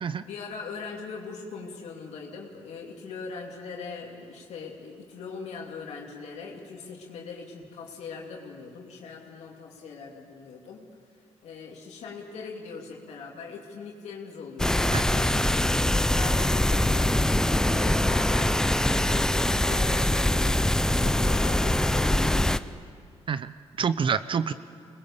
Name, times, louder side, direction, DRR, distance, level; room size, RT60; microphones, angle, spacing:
voice 1, 0.0-10.9 11.4-17.3 17.7-22.6 24.3-24.5, left 4 dB, 80° left, -1 dB, 2.7 m, -40 dB
sound 1, 14.6-22.6, left 1 dB, 5° left, 0.6 m, -23 dB
voice 2, 23.3-24.5, right 6 dB, 50° right, 13 dB, 0.7 m, -27 dB
25.0 x 20.5 x 7.1 m, 2.2 s
cardioid pair, 85°, 11 cm